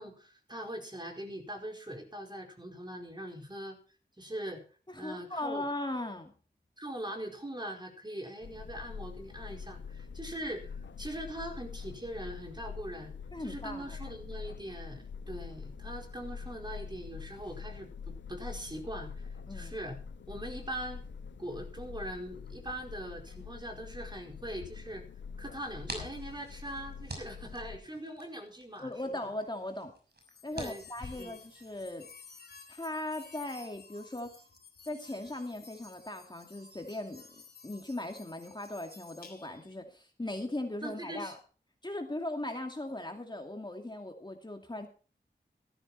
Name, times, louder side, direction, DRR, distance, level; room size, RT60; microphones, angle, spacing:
voice 1, 0.0-3.8 4.2-4.6 5.0-5.7 6.8-13.1 13.4-20.0 20.3-21.0 21.4-25.0 25.4-29.3 30.5-31.4 40.8-41.4 44.8-44.9, right 1 dB, 25° right, 2 dB, 4.8 m, -42 dB
voice 2, 4.9-6.3 13.3-13.9 19.5-19.7 28.8-29.9 30.4-32.1 32.7-34.4 34.9-37.2 37.6-41.4 41.8-44.9, left 1 dB, 25° left, 4 dB, 2.3 m, -38 dB
sound 1, 8.4-27.8, left 6 dB, 90° left, 0.9 m, -45 dB
sound 2, 25.6-31.9, right 2 dB, 60° right, 6.0 m, -48 dB
sound 3, 30.2-39.7, left 4 dB, 55° left, 4.4 m, -53 dB
14.0 x 13.0 x 4.4 m, 0.37 s
cardioid pair, 45°, 19 cm